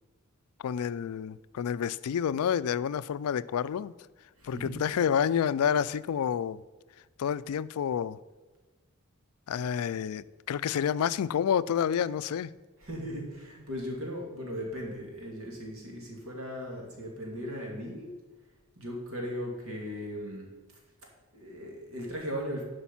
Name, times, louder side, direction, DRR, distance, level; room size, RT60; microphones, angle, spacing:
voice 1, 0.6-3.9 4.4-6.6 7.2-8.2 9.5-12.5, left 8 dB, 80° left, 0.3 m, -29 dB
voice 2, 4.4-4.8 12.8-18.1 18.8-20.5 21.3-22.6, equal, 65° right, 2.6 m, -37 dB
11.5 x 5.3 x 5.7 m
head